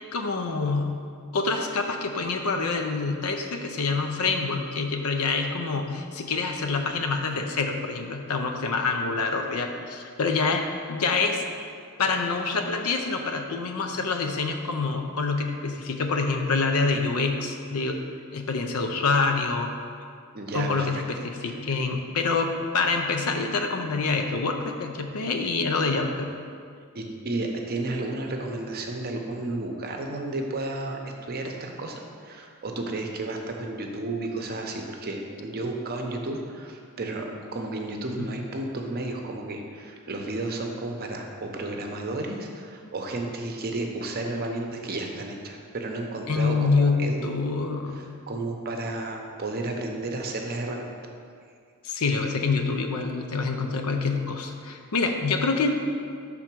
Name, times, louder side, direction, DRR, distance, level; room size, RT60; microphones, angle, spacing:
voice 1, 0.1-0.9 1.3-11.4 12.0-18.0 18.3-19.7 20.5-26.3 38.2-38.3 46.3-48.0 51.8-55.9, left 4 dB, 85° left, 4 dB, 0.6 m, -26 dB
voice 2, 20.3-20.9 21.5-21.6 26.9-31.0 31.3-37.3 37.5-47.4 47.9-51.1, right 2 dB, 45° right, 2 dB, 0.7 m, -32 dB
5.6 x 3.7 x 6.0 m, 2.2 s
head